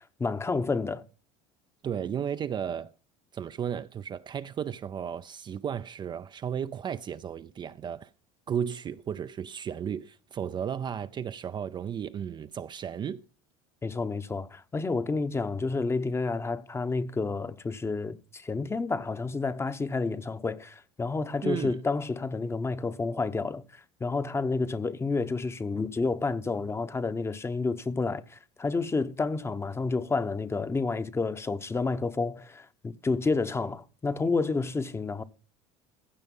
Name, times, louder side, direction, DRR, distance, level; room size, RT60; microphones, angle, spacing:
voice 1, 0.2-1.0 13.8-23.6 24.0-35.2, left 3 dB, 15° left, 0.9 m, -30 dB
voice 2, 1.8-2.9 3.3-8.1 8.5-13.2 21.4-21.8, right 8 dB, 30° right, 0.5 m, -34 dB
15.5 x 5.3 x 5.4 m
supercardioid pair, 105°, 15 cm